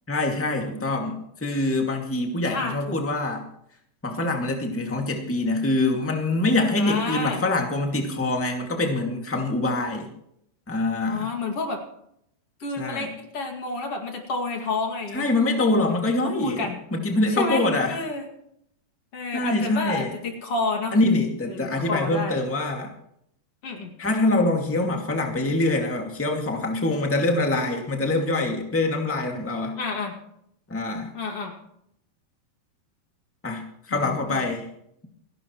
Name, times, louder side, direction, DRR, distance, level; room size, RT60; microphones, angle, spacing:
voice 1, 0.1-3.4 4.0-10.1 10.7-11.3 12.8-13.1 15.1-18.0 19.3-20.1 20.9-22.9 24.0-29.8 30.7-31.1 33.4-34.7, left 2 dB, 5° left, 2 dB, 1.3 m, -24 dB
voice 2, 2.4-3.0 6.8-7.4 11.1-11.8 12.6-15.3 16.4-16.8 17.3-18.3 19.1-21.0 21.5-22.4 23.6-23.9 29.8-30.1 31.1-31.5 33.9-34.5, left 3 dB, 45° left, 3 dB, 3.0 m, -30 dB
29.5 x 11.5 x 3.1 m, 0.74 s
omnidirectional pair, 4.0 m